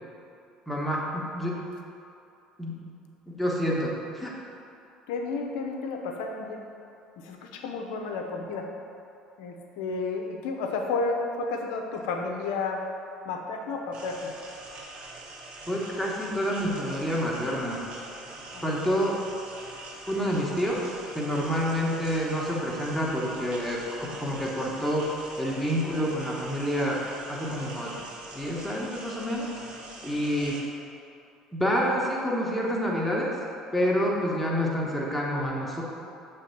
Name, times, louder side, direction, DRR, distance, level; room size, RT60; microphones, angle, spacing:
voice 1, 0.7-1.6 2.6-2.8 3.3-4.3 15.7-17.8 18.6-19.1 20.1-27.0 27.3-27.9 28.3-29.5 30.0-30.6 31.5-33.4 33.7-35.8, equal, 5° left, -3 dB, 1.1 m, -28 dB
voice 2, 5.1-6.6 7.2-8.7 9.4-12.8 13.2-14.3 18.5-18.9, left 3 dB, 65° left, 2 dB, 0.6 m, -32 dB
sound 1, 13.9-30.6, right 2 dB, 45° right, 0.9 m, -43 dB
6.9 x 3.3 x 4.5 m, 2.6 s
figure-of-eight pair, 60°, 3 cm